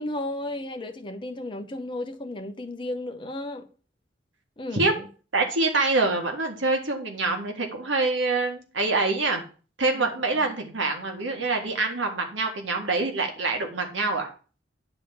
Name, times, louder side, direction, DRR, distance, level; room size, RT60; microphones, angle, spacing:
voice 1, 0.0-3.7 4.6-5.1 9.9-10.1, left 1 dB, 25° left, 0.8 m, -34 dB
voice 2, 5.3-9.4 9.8-14.3, right 3 dB, 85° right, 1.7 m, -25 dB
9.8 x 3.6 x 7.1 m
head